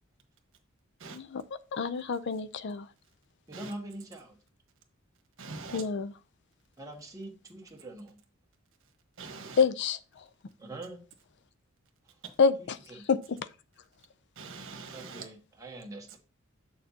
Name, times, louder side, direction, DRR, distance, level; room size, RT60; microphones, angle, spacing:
voice 1, 1.7-2.9 5.7-6.1 9.6-10.3 12.4-12.6 13.1-13.4, left 5 dB, 55° left, 0.4 m, -27 dB
voice 2, 3.5-4.4 6.8-8.2 10.6-11.0 12.0-12.2 13.0-13.1 14.9-16.2, right 2 dB, 15° right, 1.5 m, -43 dB
voice 3, 5.4-5.8 9.2-9.6 14.4-15.2, right 4 dB, 65° right, 1.3 m, -43 dB
7.6 x 6.6 x 2.8 m
head